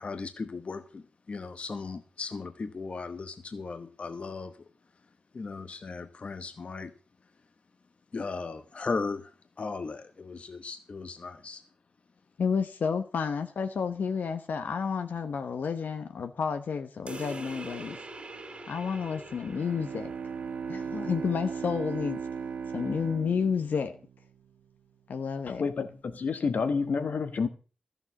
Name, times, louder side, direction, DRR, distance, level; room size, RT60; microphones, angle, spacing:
voice 1, 0.0-4.5 5.3-6.9 8.1-9.3 9.6-11.6, left 4 dB, 40° left, 1.0 m, -37 dB
voice 2, 12.4-18.0 18.7-20.1 20.7-22.2 22.7-23.9 25.1-25.6, left 6 dB, 80° left, 1.1 m, -30 dB
sound 1, 17.1-22.1, right 2 dB, 40° right, 2.9 m, -45 dB
Bowed string instrument, 19.5-24.7, right 6 dB, 75° right, 0.8 m, -37 dB
voice 3, 25.6-27.5, left 5 dB, 65° left, 1.5 m, -29 dB
14.0 x 7.1 x 7.1 m
wide cardioid pair, 140°, 3 cm